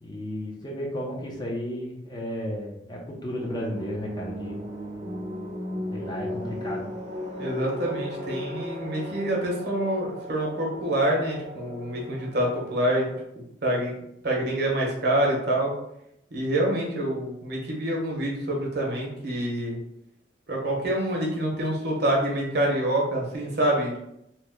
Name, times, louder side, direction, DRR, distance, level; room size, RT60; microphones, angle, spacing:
voice 1, 0.0-4.6 5.9-6.9, equal, 20° left, -2 dB, 0.5 m, -33 dB
sound 1, 3.4-13.2, equal, 35° right, 0.5 m, -37 dB
voice 2, 7.4-13.1 13.6-13.9 14.2-15.7 16.3-19.8 20.5-24.0, right 1 dB, 55° right, -2 dB, 0.8 m, -26 dB
2.9 x 2.1 x 3.4 m, 0.80 s
head